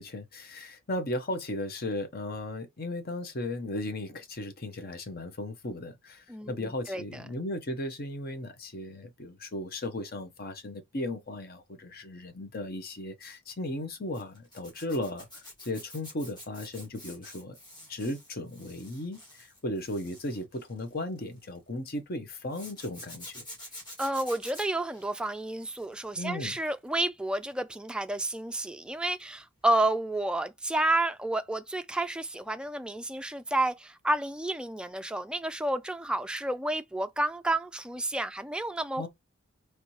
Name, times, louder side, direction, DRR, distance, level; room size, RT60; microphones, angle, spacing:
voice 1, 0.0-17.6 17.9-23.5 26.2-26.5 39.0-39.1, left 1 dB, 50° left, 0.8 m, -36 dB
voice 2, 6.3-7.2 24.0-39.1, right 1 dB, 5° right, 0.3 m, -30 dB
Zipper (clothing), 14.1-21.6 22.5-26.2 26.5-26.9 29.2-29.4 29.6-29.7, left 1 dB, 25° left, 2.4 m, -48 dB
4.2 x 3.2 x 3.1 m
head